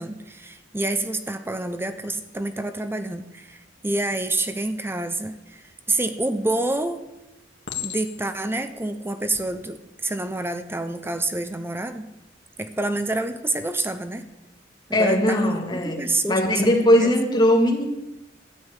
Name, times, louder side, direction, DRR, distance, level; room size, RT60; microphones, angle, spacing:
voice 1, 0.0-7.1 7.8-12.1 12.6-14.3 14.9-17.1, right 2 dB, 15° right, 9 dB, 0.7 m, -28 dB
Chink clink, 6.2-6.7 7.7-8.5 9.2-9.5, left 9 dB, 70° left, 1.8 m, -35 dB
voice 2, 14.9-16.0 16.3-17.9, left 1 dB, 25° left, 2 dB, 2.2 m, -19 dB
13.0 x 7.1 x 9.7 m, 0.94 s
head